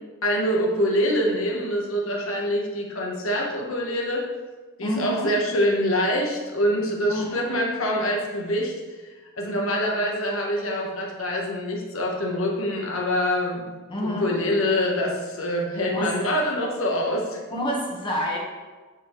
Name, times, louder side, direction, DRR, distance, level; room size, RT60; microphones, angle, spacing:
voice 1, 0.2-4.2 4.8-8.7 9.4-13.7 14.0-17.4, equal, 65° left, 0 dB, 1.2 m, -25 dB
voice 2, 4.8-5.3 7.1-7.6 13.9-14.3 15.9-16.1 17.5-18.4, equal, 20° left, -3 dB, 1.2 m, -28 dB
9.0 x 4.3 x 3.1 m, 1.3 s
head